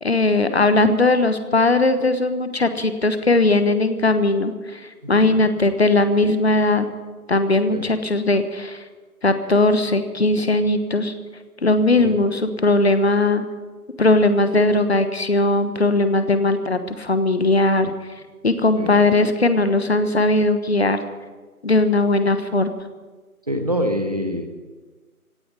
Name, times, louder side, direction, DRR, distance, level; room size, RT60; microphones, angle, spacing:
voice 1, 0.0-6.9 7.3-8.8 9.2-11.1 11.6-13.4 14.0-17.9 18.4-21.0 21.6-22.7, left 2 dB, 45° left, 10 dB, 1.2 m, -19 dB
voice 2, 5.1-5.5 7.7-7.9 12.0-12.2 18.8-19.0 23.5-24.5, equal, 25° right, 5 dB, 0.9 m, -25 dB
17.0 x 9.2 x 9.2 m, 1.3 s
figure-of-eight pair, 155°, 45 cm